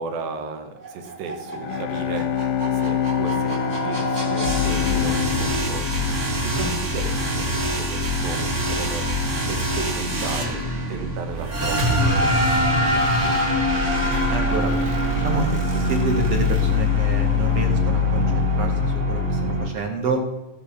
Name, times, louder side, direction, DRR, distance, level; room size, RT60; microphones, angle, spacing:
voice 1, 0.0-10.6 10.9-13.4, right 4 dB, 80° right, 7 dB, 3.1 m, -35 dB
sound 1, 0.8-19.7, left 1 dB, 30° right, 1.5 m, -23 dB
Bowed string instrument, 1.5-7.1, left 9 dB, 80° left, 2.1 m, -26 dB
voice 2, 14.1-14.7 15.2-20.2, right 3 dB, 50° right, 2 dB, 2.1 m, -28 dB
15.0 x 7.2 x 7.1 m, 0.95 s
omnidirectional pair, 4.2 m